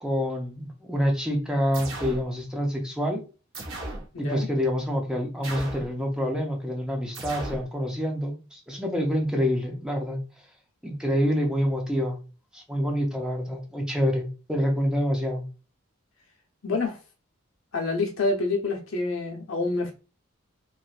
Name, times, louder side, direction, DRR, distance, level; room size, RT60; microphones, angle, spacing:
voice 1, 0.0-3.2 4.2-10.2 10.8-12.2 12.5-15.4, equal, 5° right, 0.5 m, -27 dB
sound 1, 1.7-2.3 3.5-4.1 5.4-5.9 7.1-7.7, right 2 dB, 65° right, 0.8 m, -35 dB
voice 2, 4.1-4.5 16.6-17.0 17.7-19.9, left 3 dB, 75° left, 0.8 m, -27 dB
3.2 x 2.5 x 2.4 m
head